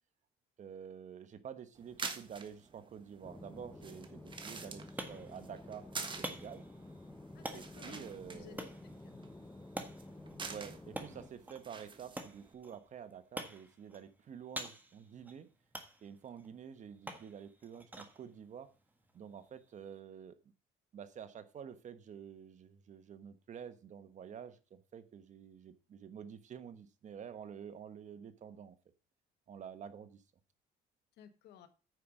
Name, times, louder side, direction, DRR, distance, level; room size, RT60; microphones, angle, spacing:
voice 1, 0.6-6.6 7.5-8.7 10.5-15.5 16.0-18.7 19.1-20.3 20.9-28.8 29.5-30.2, right 8 dB, 45° right, 11 dB, 1.1 m, -49 dB
sound 1, 1.8-12.5, right 4 dB, 30° right, 1.5 m, -48 dB
sound 2, 3.2-11.3, left 2 dB, 10° left, 0.8 m, -51 dB
sound 3, 4.4-20.0, right 1 dB, 10° right, 1.6 m, -49 dB
voice 2, 7.3-9.3 31.2-31.7, left 9 dB, 80° left, 10 dB, 1.3 m, -56 dB
9.5 x 5.2 x 6.1 m, 0.34 s
cardioid pair, 110°, 17 cm